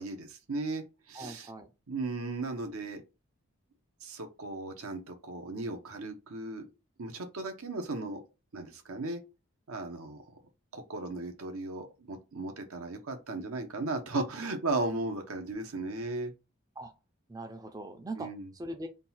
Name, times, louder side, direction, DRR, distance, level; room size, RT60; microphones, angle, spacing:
voice 1, 0.0-1.5 1.9-3.0 4.0-6.7 7.0-8.2 8.5-9.2 9.7-10.2 10.7-16.3 18.2-18.5, right 2 dB, 80° right, 0.9 m, -36 dB
voice 2, 1.1-1.7 16.8-16.9 17.3-18.3 18.5-18.9, right 1 dB, 15° right, 0.4 m, -40 dB
3.8 x 2.3 x 4.2 m
head